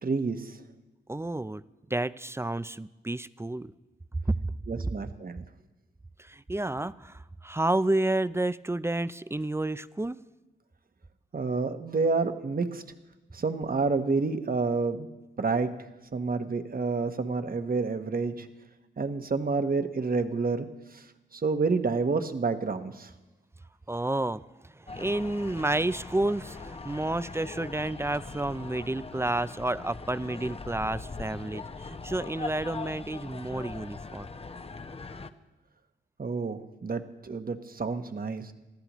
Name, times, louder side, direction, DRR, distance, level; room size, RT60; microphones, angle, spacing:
voice 1, 0.0-0.6 4.7-5.4 11.3-12.8 13.3-15.1 15.4-15.7 16.1-18.5 19.0-21.0 21.3-23.1 36.2-38.5, right 4 dB, 45° right, 8 dB, 1.1 m, -29 dB
voice 2, 1.1-1.6 1.9-3.7 4.3-4.5 6.2-10.2 23.9-34.3, right 2 dB, 15° right, 16 dB, 0.4 m, -30 dB
sound 1, 24.9-35.3, left 3 dB, 30° left, 0.7 m, -41 dB
19.5 x 14.5 x 3.1 m, 1.1 s
cardioid pair, 50°, 20 cm